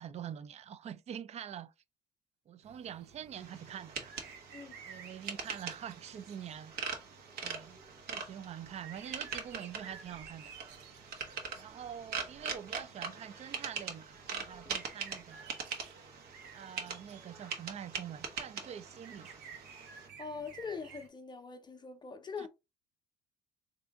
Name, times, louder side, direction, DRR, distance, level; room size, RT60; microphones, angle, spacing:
voice 1, 0.0-1.7 2.5-4.2 4.9-6.7 7.4-7.8 8.1-10.5 11.5-15.6 16.5-19.6 22.4-22.5, right 9 dB, 40° right, 0.4 m, -45 dB
sound 1, 2.6-21.1, right 6 dB, 85° right, 0.8 m, -55 dB
sound 2, 3.3-20.1, right 5 dB, 70° right, 1.1 m, -43 dB
voice 2, 20.2-22.5, left 5 dB, 25° left, 0.6 m, -42 dB
3.6 x 2.6 x 3.4 m
cardioid pair, 110°, 17 cm